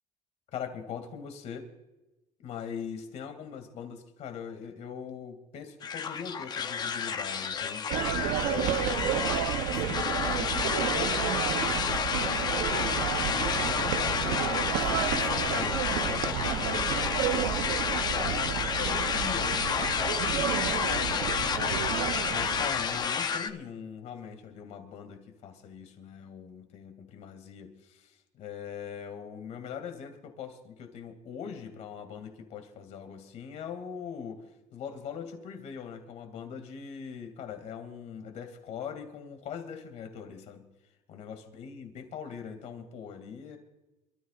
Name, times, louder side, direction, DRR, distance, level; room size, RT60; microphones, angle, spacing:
voice 1, 0.5-1.7 2.4-9.2 9.7-14.3 14.7-17.7 18.0-34.4 34.7-40.7 41.1-43.6, left 7 dB, 55° left, 6 dB, 2.4 m, -41 dB
sound 1, 5.8-23.5, left 6 dB, 30° left, 0.7 m, -30 dB
sound 2, 7.9-23.1, right 11 dB, 85° right, 0.8 m, -31 dB
27.0 x 13.5 x 2.5 m, 1.0 s
cardioid pair, 150°, 14 cm